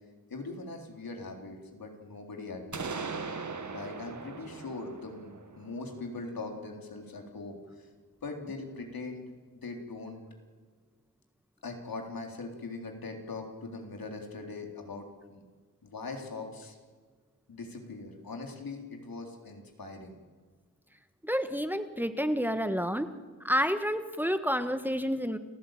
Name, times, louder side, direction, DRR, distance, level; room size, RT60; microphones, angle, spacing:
voice 1, 0.3-3.1 3.7-7.9 8.2-9.2 9.6-10.2 11.6-15.4 15.8-16.8 17.5-20.2, left 3 dB, 80° left, 2 dB, 3.8 m, -41 dB
sound 1, 2.7-6.5, right 4 dB, 55° right, 1.8 m, -40 dB
voice 2, 21.2-23.1 23.4-25.4, equal, 5° right, 9 dB, 1.7 m, -29 dB
29.5 x 14.0 x 9.1 m, 1.5 s
cardioid pair, 40°, 35 cm